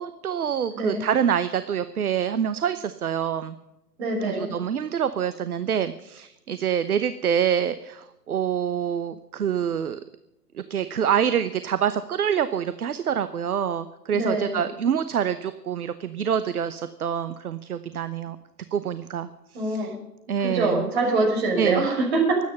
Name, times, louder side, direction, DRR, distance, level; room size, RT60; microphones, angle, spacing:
voice 1, 0.0-3.5 4.2-10.0 10.7-18.4 18.7-19.9 20.3-20.9 21.6-21.9, right 8 dB, 60° right, 12 dB, 1.0 m, -26 dB
voice 2, 4.0-4.5 14.1-14.6 19.5-20.0 20.4-22.4, right 2 dB, 40° right, 2 dB, 5.9 m, -24 dB
23.5 x 9.5 x 5.5 m, 0.90 s
figure-of-eight pair, 130°, 49 cm